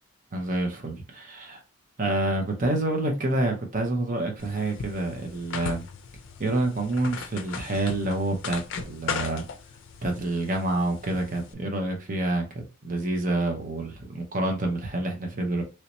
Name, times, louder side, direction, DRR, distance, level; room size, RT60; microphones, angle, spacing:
voice 1, 0.3-1.6 2.0-5.8 6.4-9.4 10.0-15.6, right 2 dB, 40° right, 0.8 m, -28 dB
sound 1, 4.4-11.5, left 6 dB, 60° left, 0.4 m, -38 dB
3.1 x 2.8 x 3.0 m
head